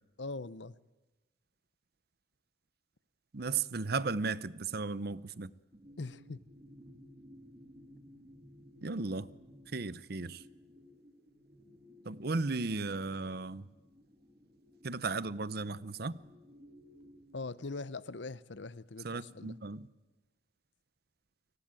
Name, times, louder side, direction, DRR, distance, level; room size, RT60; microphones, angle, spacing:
voice 1, 0.2-0.7 6.0-6.4 17.3-19.6, left 3 dB, 70° left, 0.8 m, -41 dB
voice 2, 3.3-5.5 8.8-9.3 9.7-10.4 12.0-13.7 14.8-16.2 19.0-19.9, right 4 dB, 55° right, 0.8 m, -35 dB
sound 1, 5.7-17.4, equal, 35° right, 2.6 m, -57 dB
29.5 x 19.5 x 9.0 m
head